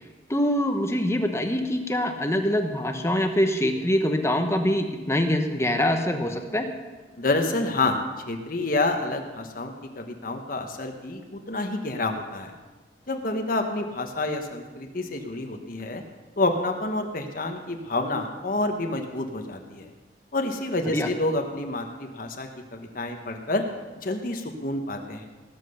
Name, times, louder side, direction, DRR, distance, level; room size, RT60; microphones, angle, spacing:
voice 1, 0.3-6.7 20.8-21.1, left 1 dB, 15° left, 5 dB, 0.9 m, -24 dB
voice 2, 7.2-8.0 8.3-12.5 13.1-16.0 16.4-19.9 20.3-23.6 24.0-25.3, left 2 dB, 50° left, 4 dB, 1.2 m, -28 dB
18.5 x 7.6 x 6.6 m, 1.2 s
head